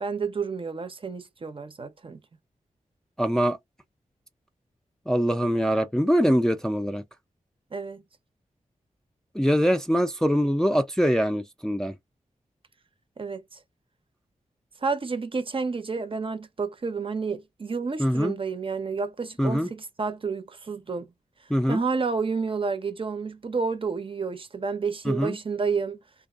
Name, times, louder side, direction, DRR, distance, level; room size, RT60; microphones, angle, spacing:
voice 1, 0.0-2.2 7.7-8.0 13.2-13.6 14.8-21.1 21.7-26.0, right 4 dB, 40° right, 0.6 m, -30 dB
voice 2, 3.2-3.6 5.1-7.0 9.3-11.9 18.0-18.3 19.4-19.7 21.5-21.8 25.1-25.4, equal, 5° left, 0.4 m, -23 dB
2.5 x 2.3 x 2.3 m
cardioid pair, 65°, 14 cm